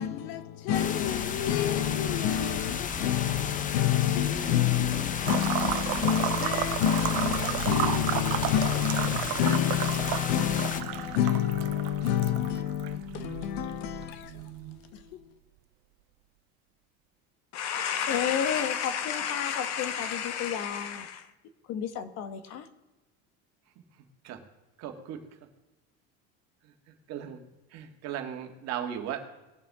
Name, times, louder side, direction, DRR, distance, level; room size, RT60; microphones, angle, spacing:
voice 1, 0.0-15.3, left 10 dB, 85° left, 1.0 m, -28 dB
sound 1, 0.7-10.8, left 6 dB, 25° left, 0.7 m, -34 dB
sound 2, 5.2-15.0, right 21 dB, 75° right, 0.5 m, -33 dB
voice 2, 17.5-21.3 21.7-22.7, left 8 dB, 55° left, 1.2 m, -30 dB
voice 3, 24.8-25.2 27.1-27.4 27.7-29.3, right 9 dB, 55° right, 1.9 m, -36 dB
20.0 x 7.1 x 3.6 m
cardioid pair, 140°, 31 cm